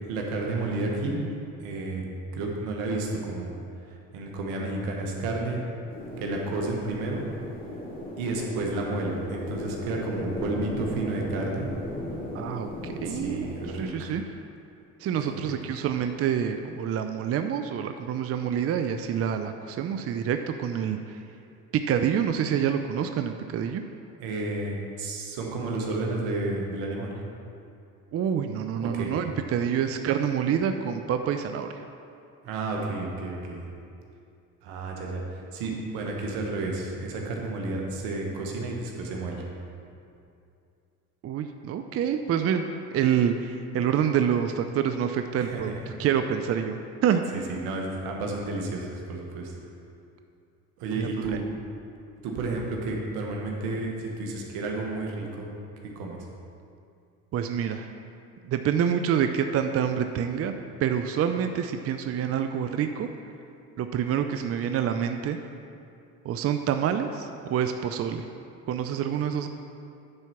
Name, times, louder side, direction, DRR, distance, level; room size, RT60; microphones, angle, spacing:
voice 1, 0.1-1.3 1.6-2.0 2.3-3.5 3.9-5.6 6.2-7.2 8.2-11.7 13.0-14.1 15.3-15.5 24.2-27.2 28.8-29.1 32.4-33.7 34.6-39.5 45.4-45.9 47.3-49.5 50.8-51.4 52.2-55.5 55.8-56.3, right 2 dB, 80° right, 0 dB, 1.5 m, -31 dB
sound 1, 5.9-13.8, left 1 dB, 25° left, 2.1 m, -36 dB
voice 2, 12.3-13.4 13.8-14.2 15.0-21.2 21.7-23.8 28.1-31.8 41.2-42.6 42.9-45.7 46.0-47.2 51.0-51.1 57.3-57.9 58.4-60.5 60.8-63.1 63.8-65.4 66.2-68.3 68.7-69.5, right 8 dB, 40° right, 7 dB, 0.5 m, -27 dB
9.6 x 4.5 x 5.7 m, 2.5 s
supercardioid pair, 75°, 37 cm